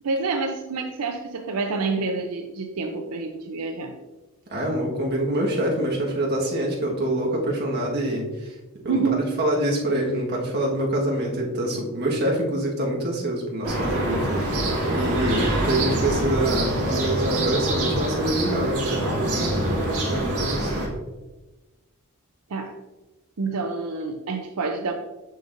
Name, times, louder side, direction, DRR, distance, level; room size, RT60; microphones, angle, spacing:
voice 1, 0.0-3.9 8.9-9.3 22.5-22.8 23.4-24.9, right 4 dB, 85° right, 4 dB, 0.6 m, -27 dB
voice 2, 4.5-8.2 8.8-14.6 14.9-20.9, right 1 dB, 50° right, -2 dB, 1.5 m, -26 dB
sound 1, 13.6-20.9, right 1 dB, 70° right, 1.8 m, -25 dB
6.5 x 6.4 x 2.6 m, 1.1 s
head